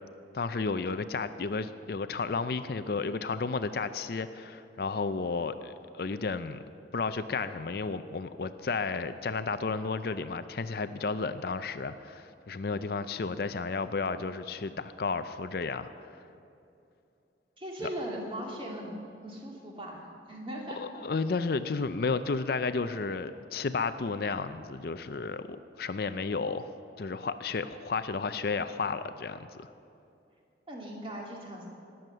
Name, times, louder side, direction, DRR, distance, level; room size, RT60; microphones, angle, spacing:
voice 1, 0.3-6.6 6.9-16.2 20.7-26.7 27.0-29.7, left 4 dB, 55° left, 11 dB, 0.5 m, -32 dB
voice 2, 17.6-20.8 30.7-31.7, right 1 dB, 30° right, -1 dB, 2.3 m, -39 dB
19.5 x 7.9 x 6.7 m, 2.6 s
head